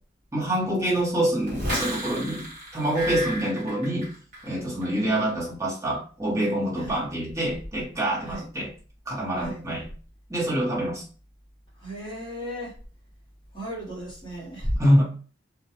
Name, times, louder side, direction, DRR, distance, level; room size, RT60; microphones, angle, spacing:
voice 1, 0.3-2.4 2.7-4.1 4.4-8.7 9.1-9.8 10.3-11.0 14.8-15.0, right 1 dB, 15° right, -5 dB, 0.9 m, -25 dB
sound 1, 1.4-4.5 4.8-5.2, right 1 dB, 40° right, 1.1 m, -33 dB
voice 2, 11.7-12.7 13.5-15.0, equal, 25° left, -6 dB, 0.9 m, -34 dB
2.3 x 2.2 x 2.8 m, 0.40 s
head